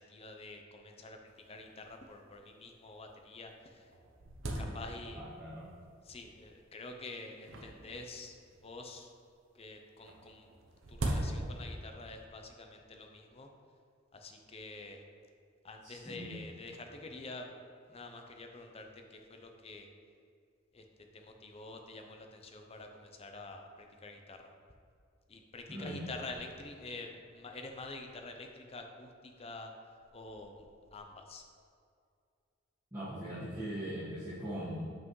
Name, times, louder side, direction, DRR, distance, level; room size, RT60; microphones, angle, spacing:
voice 1, 0.0-3.9 4.6-5.2 6.0-8.4 8.6-9.1 9.5-10.5 10.9-13.5 14.1-15.0 15.6-17.5 17.9-19.9 20.7-20.8 21.1-24.4 25.3-29.7 30.1-31.4, left 2 dB, 30° left, 4 dB, 0.6 m, -47 dB
sound 1, 1.3-1.4 1.6-1.7 2.4-2.5 3.1-3.2 3.5-5.3 6.1-6.5 7.4-8.8 10.0-11.8, right 1 dB, 85° right, 0.8 m, -39 dB
voice 2, 5.1-5.6 15.8-16.4 25.7-26.1 32.9-34.9, equal, 15° right, -14 dB, 1.5 m, -40 dB
7.4 x 5.8 x 3.2 m, 2.3 s
head